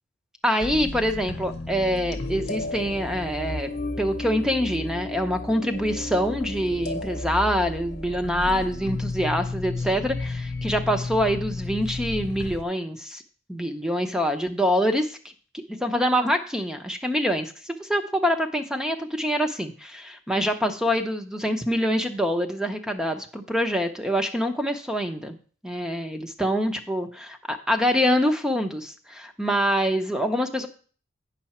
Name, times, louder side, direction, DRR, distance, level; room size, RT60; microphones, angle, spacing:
voice 1, 0.4-3.7 4.0-13.2 13.5-15.2 15.5-25.4 25.6-30.7, equal, 5° right, 6 dB, 0.7 m, -25 dB
sound 1, 0.6-12.6, left 2 dB, 55° left, 0.9 m, -33 dB
9.6 x 5.9 x 4.3 m, 0.41 s
head